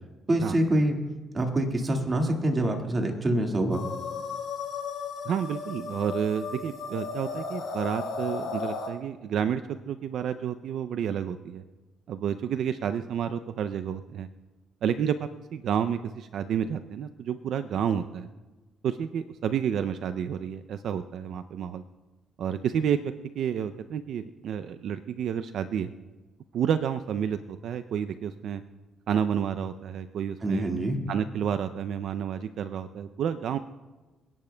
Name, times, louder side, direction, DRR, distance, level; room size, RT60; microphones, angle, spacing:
voice 1, 0.3-1.0 1.3-3.9 30.4-31.0, right 1 dB, 30° right, 2 dB, 1.8 m, -25 dB
sound 1, 3.7-8.9, left 4 dB, 75° left, 4.5 m, -35 dB
voice 2, 5.2-11.6 12.1-14.3 14.8-18.3 18.8-21.8 22.4-25.9 26.5-28.6 29.1-30.7 31.1-33.6, right 8 dB, 70° right, 11 dB, 0.4 m, -30 dB
27.0 x 10.5 x 2.2 m, 1.2 s
cardioid pair, 90°, 0 cm